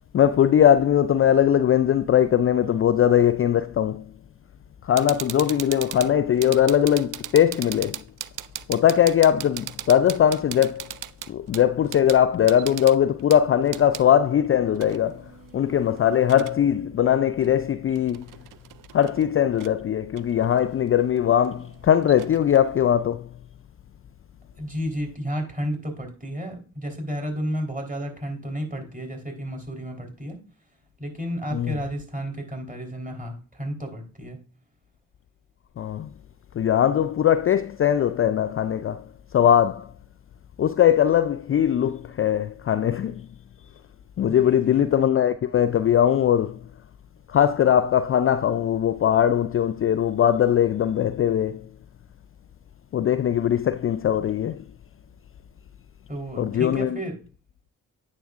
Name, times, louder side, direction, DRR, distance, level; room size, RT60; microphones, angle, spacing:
voice 1, 0.1-4.1 4.8-8.0 8.7-11.0 11.3-18.3 18.9-23.3 31.5-31.8 35.8-36.1 36.5-39.9 40.6-43.3 44.2-46.6 47.3-51.7 52.9-54.6 56.4-57.0, left 10 dB, 40° left, 0.4 m, -20 dB
sound 1, 5.0-14.0 14.8-16.6 17.4-17.5 17.9-19.2 19.6-19.7 20.2-23.0, right 12 dB, 60° right, 0.5 m, -39 dB
voice 2, 24.6-30.4 31.0-34.4 44.3-44.8 56.1-57.2, equal, 20° right, 3.8 m, -32 dB
9.1 x 6.6 x 2.5 m
hypercardioid pair, 40°, 37 cm